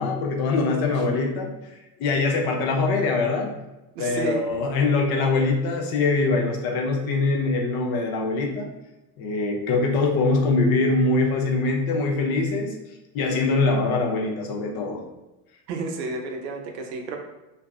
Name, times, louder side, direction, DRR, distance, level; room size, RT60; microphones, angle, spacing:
voice 1, 0.0-1.5 2.0-3.5 4.0-8.7 9.2-12.7 13.1-15.0, left 3 dB, 50° left, 0 dB, 0.6 m, -23 dB
voice 2, 4.0-4.4 15.7-17.2, right 4 dB, 85° right, 3 dB, 0.6 m, -30 dB
2.5 x 2.4 x 2.3 m, 1.0 s
hypercardioid pair, 85°, 49 cm